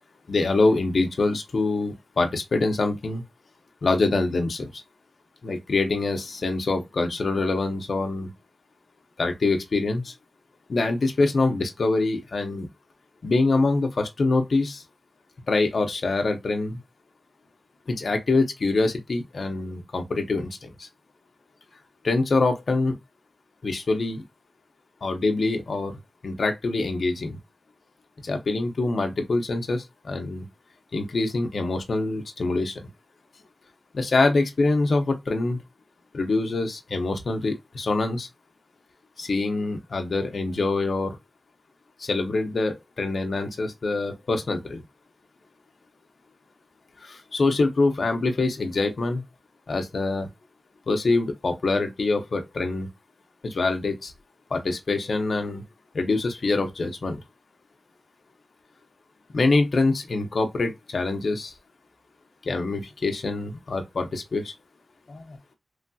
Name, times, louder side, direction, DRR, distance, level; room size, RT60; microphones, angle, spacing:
voice 1, 0.3-3.2 3.8-4.8 5.4-8.3 9.2-10.1 10.7-12.7 13.2-14.8 15.5-16.8 17.9-20.9 22.0-23.0 23.6-24.2 25.0-25.9 26.2-27.4 28.2-30.4 30.9-32.8 33.9-35.6 36.1-38.3 39.2-41.2 42.0-44.8 47.0-49.2 49.7-50.3 50.9-52.9 53.4-54.1 54.5-55.6 55.9-57.2 59.3-61.5 62.5-64.5 65.1-65.4, left 3 dB, 65° left, 0.6 m, -25 dB
3.1 x 2.6 x 2.2 m
wide cardioid pair, 85°, 0 cm